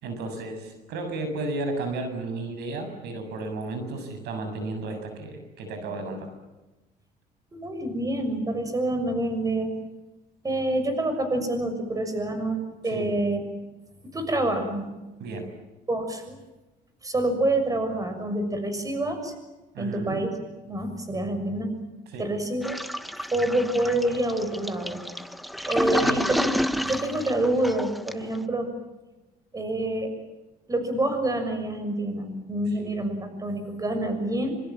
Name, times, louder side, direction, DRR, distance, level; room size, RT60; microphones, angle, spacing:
voice 1, 0.0-6.3 12.9-13.1 15.2-15.5 19.7-20.2 22.1-22.3 26.0-26.2 32.8-32.9, right 2 dB, 80° right, 7 dB, 7.4 m, -33 dB
voice 2, 7.5-9.7 10.4-13.4 14.1-14.9 15.9-16.4 17.0-19.3 19.8-20.3 20.7-21.7 22.2-22.8 23.3-25.0 25.7-26.5 26.8-28.7 29.5-30.1 30.7-34.6, right 1 dB, 20° right, 8 dB, 6.5 m, -27 dB
Toilet flush, 22.6-28.4, equal, ahead, 1.2 m, -30 dB
27.0 x 26.0 x 7.5 m, 1.1 s
cardioid pair, 110°, 17 cm